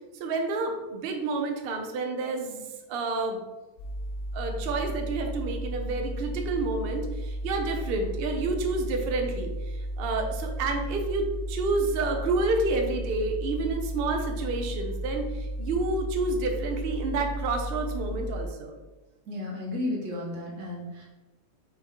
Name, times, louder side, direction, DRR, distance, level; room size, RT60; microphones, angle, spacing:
voice 1, 0.2-3.4 4.3-18.7, right 3 dB, 60° right, 3 dB, 0.6 m, -29 dB
sound 1, 3.8-18.5, right 1 dB, 70° left, 0.6 m, -34 dB
voice 2, 19.3-21.1, left 2 dB, 80° right, -4 dB, 1.7 m, -33 dB
5.1 x 3.5 x 2.9 m, 1.1 s
omnidirectional pair, 1.7 m